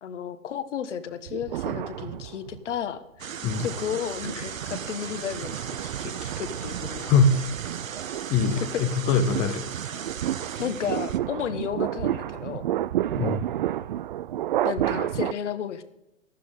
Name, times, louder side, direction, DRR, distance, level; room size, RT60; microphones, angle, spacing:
voice 1, 0.0-3.3 3.6-7.1 10.6-12.7 14.6-15.8, left 8 dB, 65° left, 11 dB, 1.5 m, -33 dB
sound 1, 1.3-2.7 3.2-15.3, right 12 dB, 40° right, 0.4 m, -31 dB
sound 2, 3.2-11.2, right 7 dB, 85° right, 1.0 m, -38 dB
voice 2, 7.0-7.4 8.3-9.7 13.1-13.4, left 4 dB, 15° left, 9 dB, 0.4 m, -22 dB
15.0 x 11.5 x 3.8 m, 0.88 s
hypercardioid pair, 125°, 39 cm